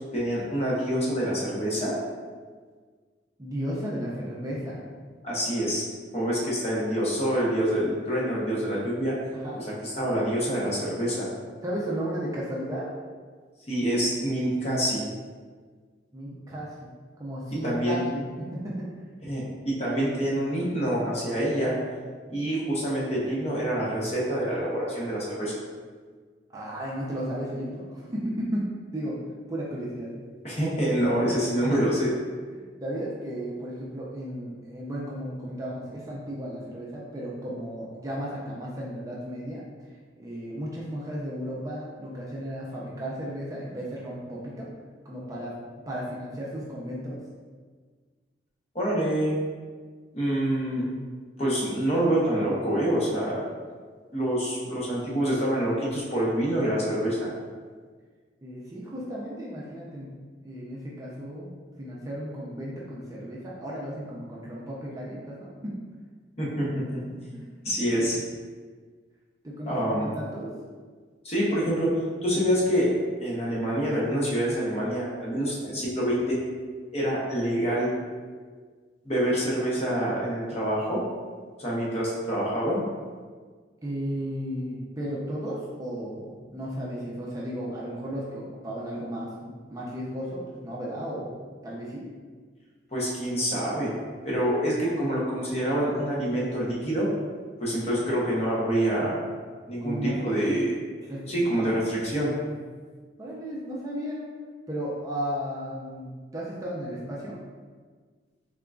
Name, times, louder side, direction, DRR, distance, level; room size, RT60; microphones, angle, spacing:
voice 1, 0.1-2.0 5.2-5.8 6.1-9.2 9.8-11.3 13.7-15.0 17.6-18.0 19.2-21.7 22.3-25.5 30.4-32.1 48.7-49.4 50.1-50.9 51.4-53.4 54.1-57.3 66.4-67.0 67.6-68.2 69.7-70.1 71.2-72.9 73.2-76.4 76.9-77.9 79.0-81.0 81.6-82.8 92.9-93.9 94.3-97.1 97.6-99.2 99.7-100.8 101.3-102.3, equal, 35° left, -5 dB, 0.9 m, -26 dB
voice 2, 3.4-4.8 9.4-9.7 11.6-12.9 16.1-19.0 26.5-29.2 29.5-30.1 32.5-39.6 40.2-44.7 45.0-45.6 45.9-47.2 58.4-60.1 60.4-61.5 61.8-65.8 67.3-67.4 69.4-70.6 83.8-91.4 91.6-92.1 99.8-100.2 101.1-101.7 103.2-104.3 104.7-107.4, equal, 20° right, -5 dB, 0.5 m, -34 dB
3.7 x 3.6 x 2.3 m, 1.5 s
head